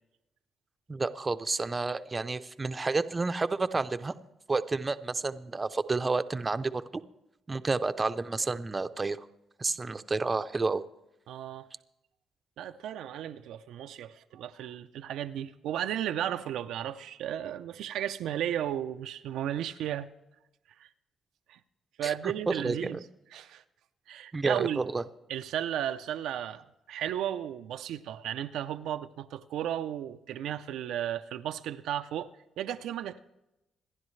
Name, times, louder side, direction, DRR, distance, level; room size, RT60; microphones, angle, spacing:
voice 1, 0.9-4.1 4.5-7.0 7.5-9.2 9.6-10.8 22.0-22.1 22.5-23.0 24.3-25.0, right 3 dB, 25° right, 0.6 m, -30 dB
voice 2, 11.3-11.7 12.6-20.1 20.8-20.9 21.5-21.6 22.0-23.0 23.3-23.6 24.1-24.8 25.3-32.3 32.6-33.2, right 11 dB, 85° right, 0.5 m, -34 dB
26.5 x 10.5 x 3.2 m
cardioid pair, 90°, 0 cm